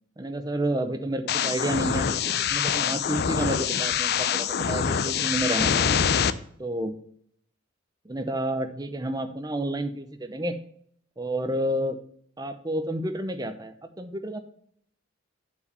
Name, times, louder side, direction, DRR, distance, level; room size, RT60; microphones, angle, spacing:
voice 1, 0.2-6.0 6.6-7.0 8.1-10.6 11.2-12.0 12.4-14.4, right 1 dB, 20° right, 7 dB, 0.6 m, -30 dB
sound 1, 1.3-6.3, left 7 dB, 50° left, 0.4 m, -25 dB
7.0 x 4.7 x 6.8 m, 0.63 s
head